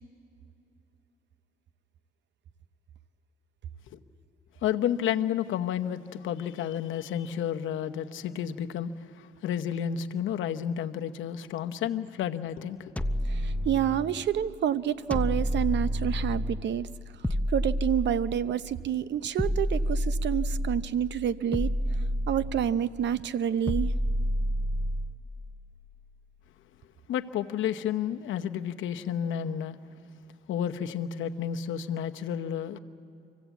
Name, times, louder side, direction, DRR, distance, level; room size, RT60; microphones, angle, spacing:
voice 1, 4.6-8.9 9.4-12.9 27.1-29.8 30.5-32.8, left 9 dB, 80° left, 7 dB, 0.9 m, -31 dB
sound 1, 13.0-14.3 15.1-16.7 17.2-18.7 19.4-21.0 21.5-22.9 23.7-25.3, equal, 5° left, 0.5 m, -29 dB
voice 2, 13.3-16.9 17.5-21.7 22.3-23.9, right 10 dB, 65° right, 15 dB, 0.7 m, -28 dB
26.0 x 16.0 x 8.3 m, 2.8 s
cardioid pair, 90°, 20 cm